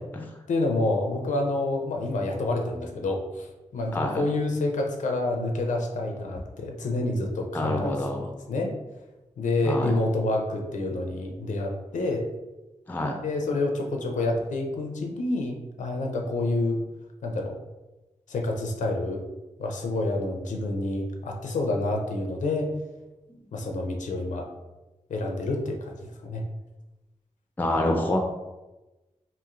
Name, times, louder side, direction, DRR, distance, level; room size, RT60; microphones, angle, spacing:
voice 1, 0.5-8.0 8.5-8.7 9.4-12.3 13.2-16.8 17.2-17.6 18.3-19.2 19.6-22.7 23.5-24.5 25.1-26.5, left 2 dB, 85° left, 2 dB, 0.5 m, -28 dB
voice 2, 3.9-4.2 7.5-8.3 9.6-10.0 12.9-13.2 27.6-28.2, left 1 dB, 15° left, 3 dB, 0.4 m, -27 dB
3.0 x 2.7 x 2.4 m, 1.1 s
cardioid pair, 75°, 13 cm